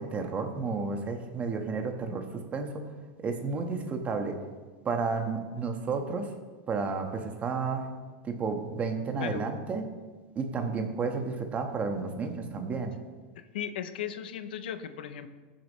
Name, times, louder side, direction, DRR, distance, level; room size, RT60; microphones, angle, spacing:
voice 1, 0.0-2.2 2.5-2.8 3.2-4.4 4.8-6.3 6.7-7.9 8.2-9.8 10.3-12.9, right 4 dB, 30° right, 4 dB, 1.4 m, -31 dB
voice 2, 13.5-15.3, left 9 dB, 90° left, 11 dB, 0.7 m, -36 dB
19.0 x 7.4 x 3.2 m, 1.4 s
supercardioid pair, 125°, 5 cm